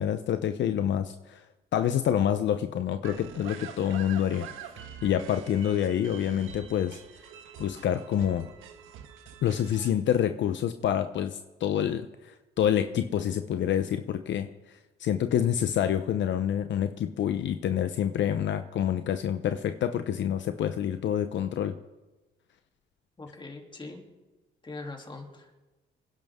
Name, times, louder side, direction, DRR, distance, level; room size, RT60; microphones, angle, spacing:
voice 1, 0.0-1.4 1.7-4.5 5.0-7.0 7.6-8.5 9.4-21.8, left 10 dB, 70° left, 9 dB, 0.8 m, -27 dB
sound 1, 3.0-9.9, right 8 dB, 90° right, 1.3 m, -45 dB
voice 2, 23.2-24.0 24.6-25.6, left 3 dB, 25° left, 1 dB, 3.0 m, -42 dB
26.0 x 11.0 x 3.7 m, 1.1 s
cardioid pair, 90°, 20 cm